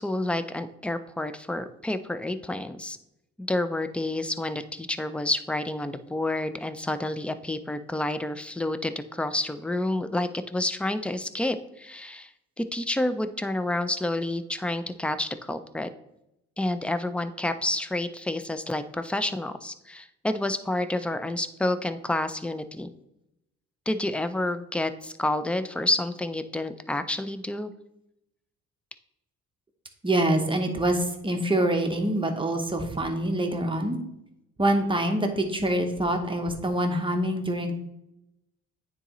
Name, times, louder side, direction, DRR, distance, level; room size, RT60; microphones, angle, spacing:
voice 1, 0.0-3.0 3.4-12.3 12.6-15.9 16.6-22.9 23.9-27.7, left 1 dB, 5° left, 11 dB, 0.4 m, -29 dB
voice 2, 30.0-34.0 34.6-37.7, right 1 dB, 15° right, 3 dB, 1.0 m, -25 dB
9.2 x 4.0 x 3.0 m, 0.86 s
cardioid pair, 90°, 30 cm